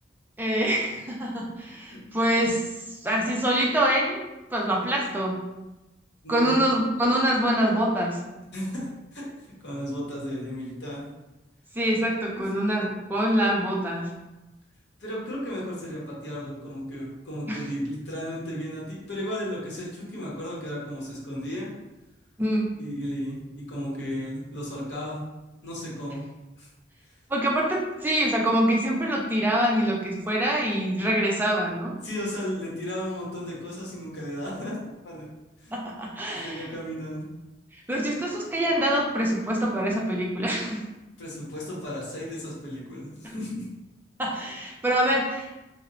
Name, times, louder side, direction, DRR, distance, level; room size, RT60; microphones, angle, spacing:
voice 1, 0.4-4.2 4.5-5.5 6.3-8.2 11.7-14.1 17.5-17.6 22.4-22.7 27.3-32.0 35.7-36.7 37.7-40.8 43.2-43.3 44.2-45.6, right 1 dB, 10° right, -2 dB, 0.4 m, -25 dB
voice 2, 6.2-6.6 8.5-9.3 9.6-11.0 15.0-21.7 22.8-25.2 25.6-26.2 26.6-26.7 32.0-34.7 35.0-35.3 35.6-35.7 36.3-37.2 41.2-43.7, equal, 65° left, -5 dB, 0.8 m, -34 dB
2.8 x 2.0 x 2.5 m, 1.0 s
head